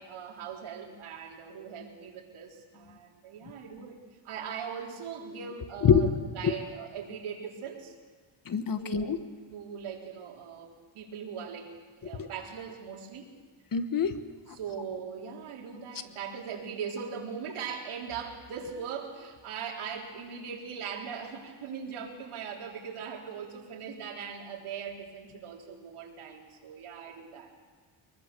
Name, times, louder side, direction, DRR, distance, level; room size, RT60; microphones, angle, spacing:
voice 1, 0.0-4.0 4.2-6.1 6.3-8.0 8.8-9.2 9.5-10.7 10.9-11.7 12.0-13.3 14.5-27.5, right 7 dB, 80° right, 0 dB, 3.9 m, -40 dB
voice 2, 8.5-9.2 12.2-12.3 13.7-14.1, left 6 dB, 40° left, 9 dB, 1.4 m, -24 dB
23.0 x 22.0 x 6.9 m, 1.5 s
cardioid pair, 140°, 50 cm